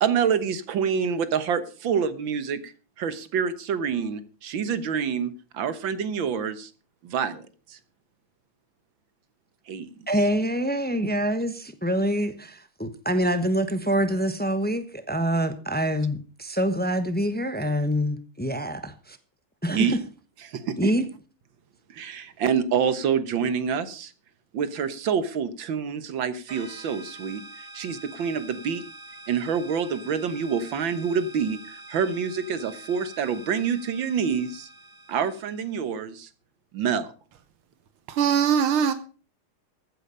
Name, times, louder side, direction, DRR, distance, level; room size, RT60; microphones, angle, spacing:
voice 1, 0.0-6.7 7.0-7.8 9.7-9.9 19.7-20.0 20.4-20.9 21.9-24.1 24.5-28.8 29.3-34.7 35.1-36.3 36.7-37.1, right 7 dB, 70° right, 1.9 m, -27 dB
voice 2, 10.1-19.2 19.6-19.9 20.8-21.0, equal, 10° left, 0.4 m, -26 dB
sound 1, 26.5-35.9, right 1 dB, 25° right, 2.6 m, -45 dB
voice 3, 38.1-38.9, right 7 dB, 85° right, 1.8 m, -21 dB
15.0 x 9.1 x 5.5 m
omnidirectional pair, 2.3 m